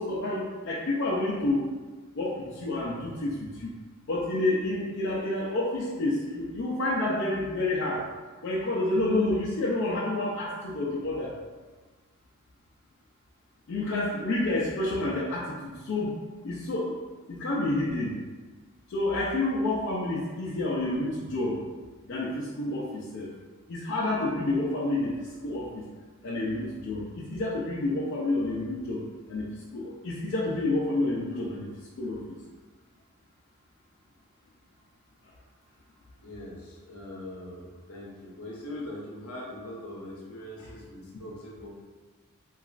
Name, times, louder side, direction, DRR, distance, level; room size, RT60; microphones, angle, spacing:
voice 1, 0.0-1.7 2.1-3.7 4.1-8.0 8.4-11.3 13.7-16.2 16.4-17.0 17.3-18.2 18.9-21.6 22.1-23.3 23.7-25.8 26.2-29.0 29.3-31.7 32.0-32.4, left 2 dB, 55° left, -5 dB, 0.4 m, -29 dB
voice 2, 36.2-41.8, left 1 dB, 90° left, -4 dB, 0.8 m, -41 dB
2.9 x 2.3 x 2.4 m, 1.3 s
head